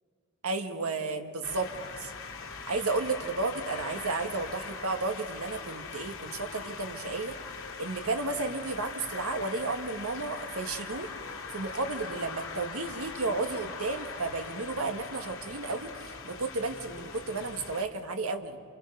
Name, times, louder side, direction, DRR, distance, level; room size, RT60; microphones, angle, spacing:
voice 1, 0.4-1.7 2.0-2.1 2.7-7.3 7.8-11.1 11.5-18.6, right 3 dB, 80° right, 6 dB, 1.6 m, -33 dB
sound 1, 1.4-17.8, left 4 dB, 65° left, 2.7 m, -41 dB
28.0 x 27.0 x 5.4 m, 2.4 s
head